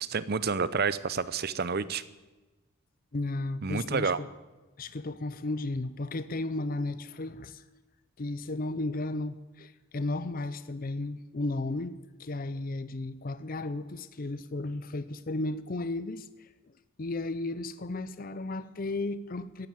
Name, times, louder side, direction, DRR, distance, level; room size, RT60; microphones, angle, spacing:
voice 1, 0.0-2.0 3.6-4.2, right 5 dB, 45° right, 0.6 m, -29 dB
voice 2, 3.1-4.3 4.8-7.6 8.2-16.5 17.0-19.7, left 2 dB, 40° left, 0.6 m, -34 dB
14.5 x 10.0 x 9.5 m
head